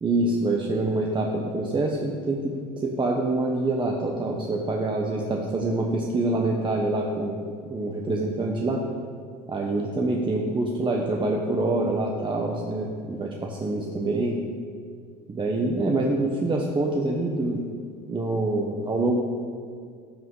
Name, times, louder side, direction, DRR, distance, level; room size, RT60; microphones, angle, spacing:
voice 1, 0.0-7.4 7.7-8.8 9.5-14.4 15.3-17.6 18.1-19.2, right 2 dB, 25° right, 0 dB, 1.1 m, -26 dB
13.5 x 7.6 x 3.9 m, 2.1 s
supercardioid pair, 95°, 21 cm